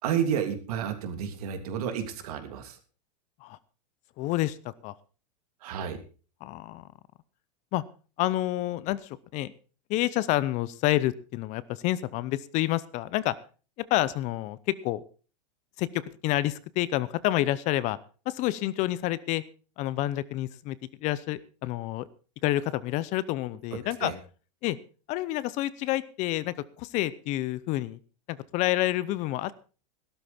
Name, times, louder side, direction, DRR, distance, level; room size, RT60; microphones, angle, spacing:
voice 1, 0.0-2.8 5.6-6.0 24.0-24.1, right 8 dB, 65° right, 7 dB, 3.0 m, -30 dB
voice 2, 4.2-4.6 4.8-4.9 6.4-6.8 7.7-7.8 8.2-9.5 9.9-13.4 13.9-14.6 14.8-15.0 15.8-15.9 16.2-18.0 18.3-19.4 19.8-20.8 21.0-22.1 22.4-24.1 24.6-24.8 25.1-28.0 28.3-29.5, left 15 dB, 35° left, 18 dB, 0.7 m, -28 dB
15.0 x 12.5 x 4.3 m, 0.36 s
supercardioid pair, 145°, 21 cm